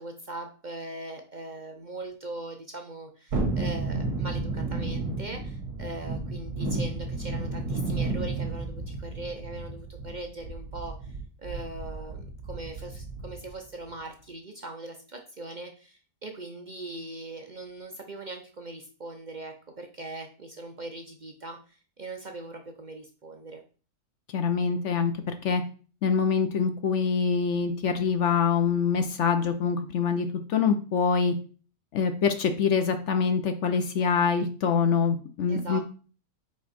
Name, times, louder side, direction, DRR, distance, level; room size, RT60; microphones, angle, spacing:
voice 1, 0.0-23.6 35.5-35.8, right 2 dB, 55° right, 4 dB, 0.5 m, -40 dB
Thunderstorm, 3.3-13.5 13.9-14.0, right 3 dB, 85° right, 1.9 m, -32 dB
voice 2, 24.3-25.6 26.0-31.3 31.9-35.8, left 6 dB, 60° left, 8 dB, 0.8 m, -25 dB
5.1 x 4.5 x 4.1 m, 0.39 s
omnidirectional pair, 1.6 m